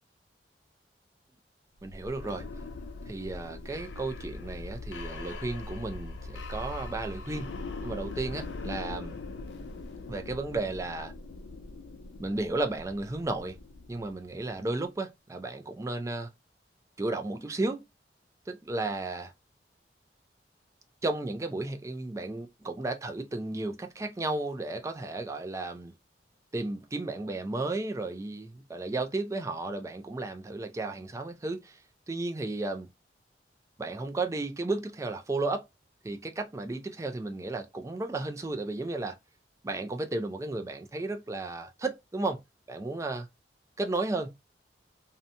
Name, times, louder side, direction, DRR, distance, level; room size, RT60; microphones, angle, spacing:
sound 1, 1.8-14.6, left 3 dB, 80° left, 0.4 m, -41 dB
voice 1, 1.8-2.5 3.1-7.6 7.8-9.2 10.1-11.1 12.2-13.6 13.9-16.3 17.0-17.8 18.5-19.3 21.0-25.9 26.5-31.8 32.1-32.9 33.8-35.7 36.0-39.2 39.6-42.4 42.7-43.3 43.8-44.3, right 2 dB, 15° right, 0.3 m, -33 dB
2.7 x 2.2 x 2.6 m
head